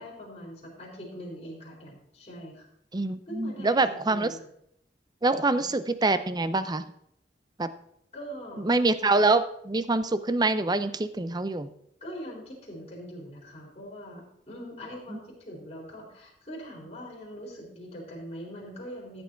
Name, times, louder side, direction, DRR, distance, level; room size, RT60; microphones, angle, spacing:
voice 1, 0.0-2.6 3.3-3.8 4.1-4.4 5.5-5.6 8.1-8.7 12.0-19.2, equal, 35° left, -5 dB, 4.3 m, -42 dB
voice 2, 2.9-4.3 5.2-6.9 7.6-7.7 8.6-11.7 15.1-15.2, right 3 dB, 25° right, 13 dB, 0.6 m, -25 dB
14.0 x 8.0 x 4.6 m, 0.74 s
head